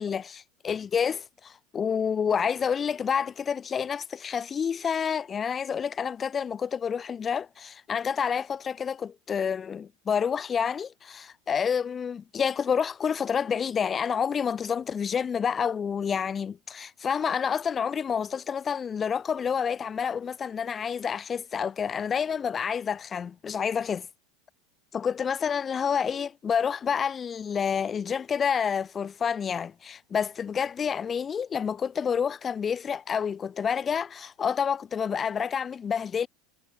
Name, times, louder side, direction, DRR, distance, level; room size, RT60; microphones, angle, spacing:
voice 1, 0.0-24.1 24.9-36.3, left 7 dB, 20° left, 0.8 m, -29 dB
supercardioid pair, 160°, 0 cm